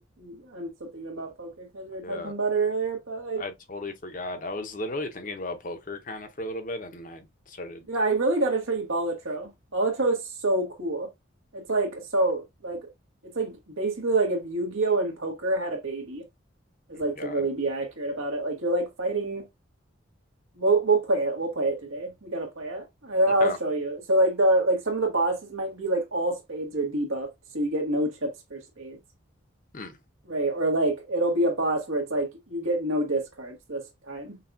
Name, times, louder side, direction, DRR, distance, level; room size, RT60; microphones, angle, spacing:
voice 1, 0.0-3.4 7.9-11.1 11.5-12.8 13.3-16.2 16.9-19.5 20.6-27.3 27.5-29.0 30.3-34.4, right 2 dB, 85° right, 1.4 m, -27 dB
voice 2, 2.0-2.3 3.4-7.9 16.9-17.5 23.4-23.6 29.7-30.0, left 2 dB, 40° left, 0.7 m, -35 dB
5.6 x 2.3 x 2.5 m
head